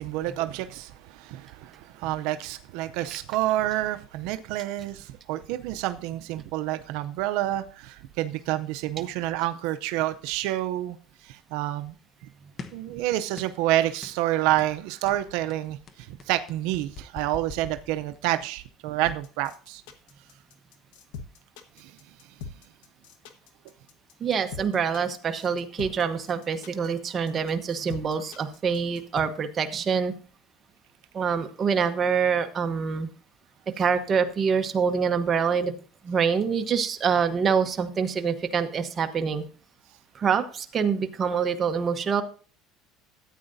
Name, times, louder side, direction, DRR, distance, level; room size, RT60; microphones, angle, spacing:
voice 1, 0.0-11.0 11.2-11.9 12.7-19.8 21.8-21.9, right 14 dB, 75° right, 0.5 m, -28 dB
sound 1, 12.6-12.9 13.4-13.7 14.0-14.2 14.6-14.8 15.1-18.4, left 4 dB, 35° left, 0.9 m, -43 dB
sound 2, 19.0-29.2, left 5 dB, 90° left, 1.1 m, -42 dB
voice 2, 24.2-30.1 31.1-33.1 33.7-35.7 36.0-39.4 40.1-42.2, right 6 dB, 30° right, 0.9 m, -25 dB
13.5 x 8.8 x 2.6 m
cardioid pair, 135°, 0 cm